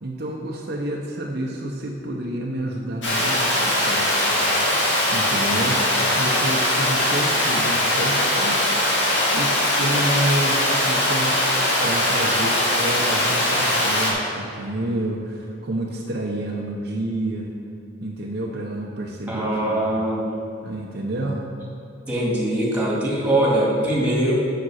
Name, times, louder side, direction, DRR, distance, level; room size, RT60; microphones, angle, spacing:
voice 1, 0.0-4.4 5.1-8.6 9.3-11.4 11.8-17.5 18.0-19.9 20.6-21.5, right 1 dB, 55° right, -1 dB, 0.8 m, -29 dB
Water, 3.0-14.1, left 1 dB, 65° left, 2.2 m, -21 dB
voice 2, 19.3-20.3 22.1-24.3, right 1 dB, 5° right, -5 dB, 2.2 m, -22 dB
7.5 x 6.9 x 6.3 m, 2.6 s
head